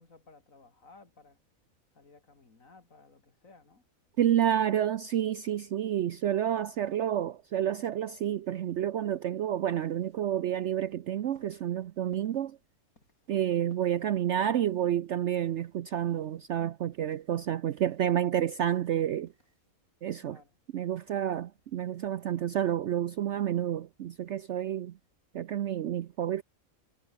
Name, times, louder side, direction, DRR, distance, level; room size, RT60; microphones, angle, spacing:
voice 1, 0.0-1.4 1.9-3.9 20.2-20.6, left 3 dB, 70° left, 3.7 m, -57 dB
voice 2, 4.2-12.6 13.3-19.3 20.0-20.4 20.7-24.9 25.3-26.4, right 10 dB, 60° right, 0.9 m, -29 dB
sound 1, 9.6-19.7, left 2 dB, 90° left, 7.4 m, -67 dB
omnidirectional pair, 1.5 m